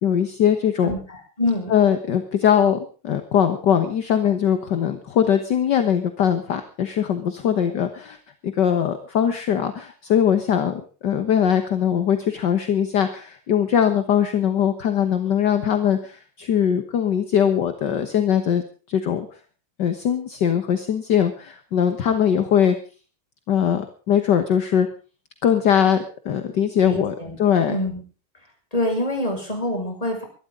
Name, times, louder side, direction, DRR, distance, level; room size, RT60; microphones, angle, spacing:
voice 1, 0.0-1.0 1.7-2.8 3.0-8.2 8.4-18.6 18.9-19.3 19.8-22.8 23.5-24.9 25.4-27.8, left 8 dB, 60° left, 9 dB, 1.8 m, -21 dB
voice 2, 0.8-1.7 26.8-27.4 27.7-28.0 28.7-30.2, left 1 dB, 15° left, 3 dB, 5.5 m, -26 dB
23.0 x 12.5 x 3.7 m, 0.37 s
omnidirectional pair, 2.3 m